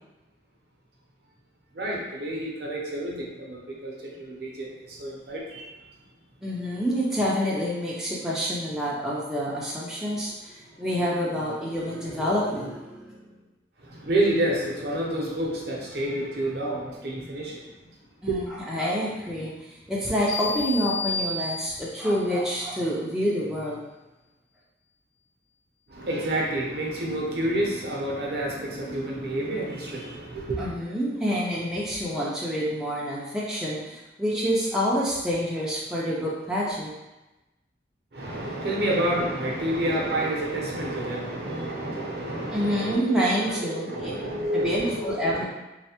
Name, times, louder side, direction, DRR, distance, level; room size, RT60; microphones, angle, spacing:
voice 1, 1.7-5.8 11.9-12.1 13.8-17.9 18.3-18.5 25.9-30.7 38.1-45.4, right 1 dB, 60° right, -2 dB, 0.6 m, -29 dB
voice 2, 6.4-13.3 18.2-23.8 30.6-36.9 42.5-44.1 44.5-45.4, equal, 5° right, -7 dB, 0.3 m, -27 dB
sound 1, 20.3-22.1, left 3 dB, 30° left, 0.8 m, -31 dB
3.1 x 2.1 x 2.8 m, 1.0 s
head